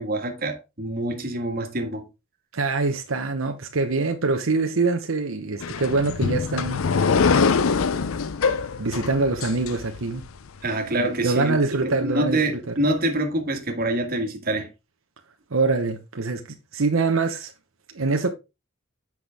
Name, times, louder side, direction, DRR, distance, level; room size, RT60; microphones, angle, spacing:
voice 1, 0.0-2.1 10.6-14.7, right 1 dB, 45° right, 1.7 m, -26 dB
voice 2, 2.5-6.8 8.8-10.2 11.0-12.4 12.7-12.8 15.5-16.4 16.7-17.5 17.9-18.3, right 3 dB, 80° right, 0.9 m, -24 dB
sound 1, 5.6-10.3, left 5 dB, 90° left, 0.5 m, -23 dB
8.1 x 5.9 x 3.5 m
head